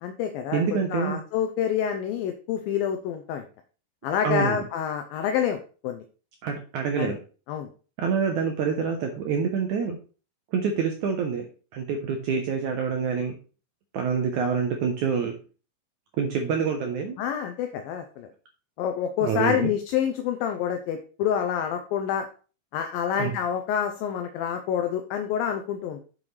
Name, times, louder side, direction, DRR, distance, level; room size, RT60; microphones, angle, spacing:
voice 1, 0.0-3.5 4.0-6.0 7.0-7.2 7.5-7.7 17.2-18.3 18.8-22.3 22.7-26.0, left 8 dB, 80° left, 6 dB, 2.3 m, -27 dB
voice 2, 0.5-1.2 4.2-4.6 6.4-7.2 8.0-10.0 10.5-11.5 11.7-13.4 13.9-15.4 16.2-17.2 19.2-19.7 23.2-23.3, right 6 dB, 75° right, 3 dB, 1.8 m, -26 dB
7.8 x 7.3 x 3.3 m, 0.37 s
omnidirectional pair, 4.5 m